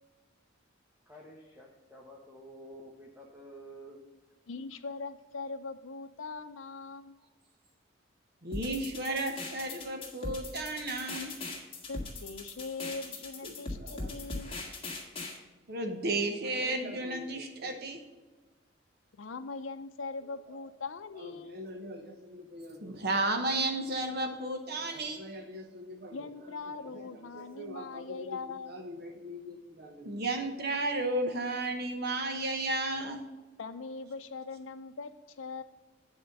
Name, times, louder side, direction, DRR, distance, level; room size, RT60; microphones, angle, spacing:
voice 1, 1.1-4.0, right 1 dB, 10° right, -2 dB, 1.0 m, -50 dB
voice 2, 4.5-7.1 11.9-14.6 19.2-21.7 26.1-28.8 33.6-35.6, left 4 dB, 85° left, 8 dB, 0.5 m, -41 dB
voice 3, 8.4-11.3 13.4-14.1 15.7-18.0 20.5-20.6 21.2-26.2 27.3-33.2, right 2 dB, 55° right, 5 dB, 0.9 m, -34 dB
sound 1, 8.5-15.4, left 3 dB, 30° left, 1.7 m, -40 dB
9.2 x 4.4 x 6.6 m, 1.2 s
head